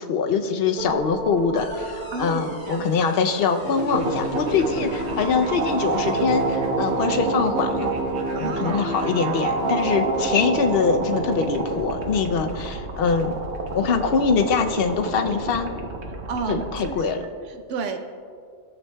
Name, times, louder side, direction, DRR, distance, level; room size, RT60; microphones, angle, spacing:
voice 1, 0.0-7.9 8.4-13.4 13.7-15.7 16.5-17.2, left 5 dB, 60° left, 6 dB, 0.8 m, -23 dB
sound 1, 0.8-16.9, right 3 dB, 65° right, 1.2 m, -28 dB
sound 2, 1.6-6.6, left 1 dB, 45° left, 1.1 m, -41 dB
voice 2, 8.3-8.9 16.3-18.0, right 4 dB, 90° right, 5 dB, 1.0 m, -31 dB
14.5 x 7.2 x 2.2 m, 2.2 s
omnidirectional pair, 1.2 m